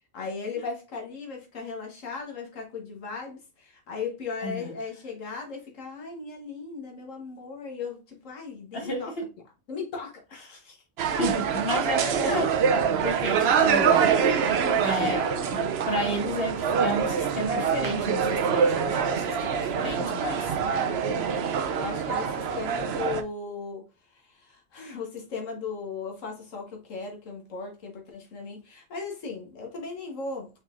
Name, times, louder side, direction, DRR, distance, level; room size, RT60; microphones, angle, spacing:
voice 1, 0.1-9.1 9.7-10.8 12.2-12.5 20.5-21.2 21.7-23.9 24.1-30.5, left 4 dB, 90° left, 1.6 m, -37 dB
voice 2, 4.4-4.7 8.7-9.3 11.2-12.5 13.0-14.1 14.8-20.5, equal, 50° left, 1.5 m, -31 dB
sound 1, 11.0-23.2, right 7 dB, 60° right, 0.8 m, -25 dB
5.5 x 3.9 x 2.5 m
omnidirectional pair, 1.3 m